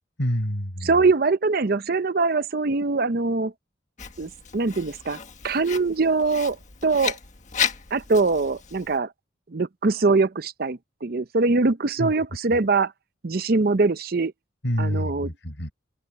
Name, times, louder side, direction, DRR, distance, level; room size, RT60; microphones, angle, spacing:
voice 1, 0.2-0.9 12.0-12.1 14.6-15.7, equal, 80° left, 5.7 m, -27 dB
voice 2, 0.8-3.5 4.2-5.2 5.4-6.6 6.8-7.2 7.9-9.1 9.5-12.9 13.2-14.3 14.8-15.3, right 3 dB, 55° right, 0.7 m, -22 dB
Writing, 4.0-9.0, left 7 dB, 40° left, 1.5 m, -33 dB
head